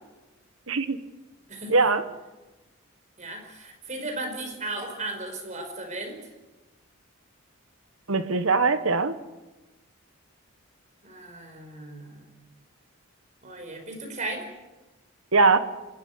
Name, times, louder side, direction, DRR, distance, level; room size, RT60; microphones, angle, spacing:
voice 1, 0.7-1.0 1.7-2.0 8.1-9.2 15.3-15.6, right 4 dB, 75° right, 9 dB, 1.4 m, -21 dB
voice 2, 3.2-6.2 11.0-12.2 13.4-14.5, right 2 dB, 35° right, 3 dB, 5.1 m, -36 dB
27.5 x 12.5 x 9.8 m, 1.1 s
head